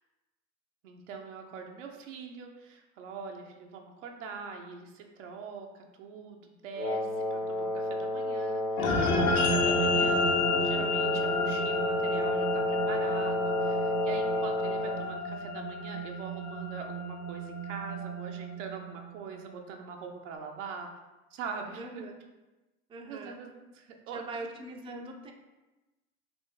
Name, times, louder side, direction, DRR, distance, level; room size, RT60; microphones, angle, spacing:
voice 1, 0.8-20.9 21.3-22.1 23.1-24.2, right 5 dB, 80° right, 2 dB, 0.8 m, -43 dB
Wind instrument woodwind instrument, 6.7-15.1, left 1 dB, 85° left, 1.0 m, -31 dB
sound 1, 8.8-19.4, left 2 dB, 50° left, 0.7 m, -31 dB
voice 2, 21.8-22.1 22.9-23.4 24.1-25.3, right 2 dB, 15° right, 2 dB, 0.4 m, -41 dB
4.0 x 2.6 x 3.7 m, 1.1 s
hypercardioid pair, 90°, 37 cm